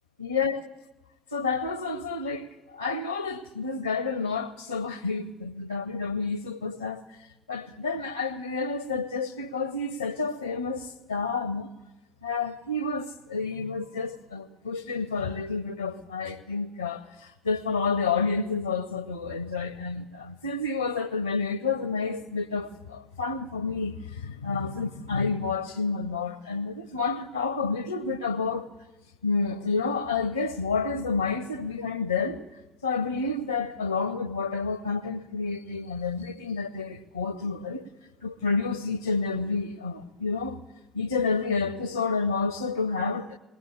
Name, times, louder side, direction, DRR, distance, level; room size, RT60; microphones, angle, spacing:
voice 1, 0.2-0.7 1.3-7.0 7.5-11.7 12.2-28.7 29.2-32.4 32.8-37.9 38.2-40.6 40.9-43.4, left 4 dB, 85° left, 0.7 m, -29 dB
20.0 x 19.0 x 8.5 m
figure-of-eight pair, 50°, 0 cm